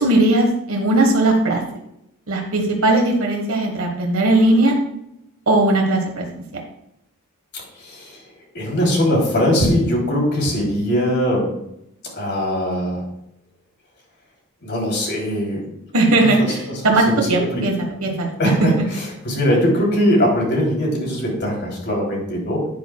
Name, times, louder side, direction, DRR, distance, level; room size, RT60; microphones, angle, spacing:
voice 1, 0.0-1.6 2.3-4.7 5.5-6.6 15.9-17.7 18.0-18.3, right 2 dB, 75° right, 1 dB, 1.4 m, -18 dB
voice 2, 7.7-8.2 8.5-11.5 12.2-13.0 14.6-15.6 16.4-16.5 17.2-17.6 18.4-22.7, equal, 55° left, -1 dB, 3.1 m, -21 dB
10.5 x 9.3 x 2.3 m, 0.79 s
head